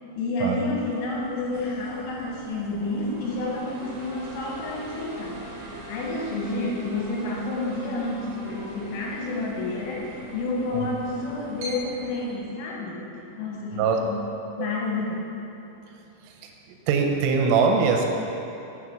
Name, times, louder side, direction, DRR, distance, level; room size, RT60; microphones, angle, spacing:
voice 1, 0.0-13.1 13.4-14.2 14.6-15.2, left 2 dB, 80° left, -3 dB, 3.8 m, -30 dB
sound 1, 0.7-12.4, equal, 65° right, 2.5 m, -41 dB
voice 2, 16.9-18.1, right 5 dB, 80° right, 2 dB, 3.1 m, -22 dB
7.5 x 6.4 x 5.8 m, 2.9 s
omnidirectional pair, 5.9 m